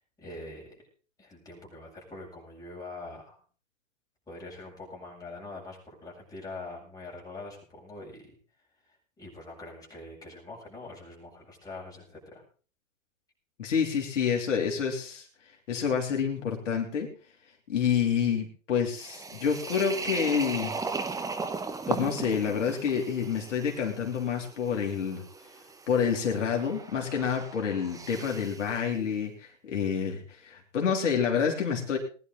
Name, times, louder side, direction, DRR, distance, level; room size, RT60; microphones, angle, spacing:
voice 1, 0.2-0.8 1.2-3.4 4.3-8.3 9.2-12.4, left 2 dB, 10° left, -3 dB, 8.0 m, -44 dB
voice 2, 13.6-15.3 15.7-17.1 17.7-20.7 21.9-25.2 25.9-32.0, left 7 dB, 65° left, 1 dB, 3.3 m, -28 dB
sound 1, 18.9-28.7, right 4 dB, 10° right, 1.3 m, -38 dB
20.5 x 11.0 x 4.1 m, 0.40 s
hypercardioid pair, 125°, 39 cm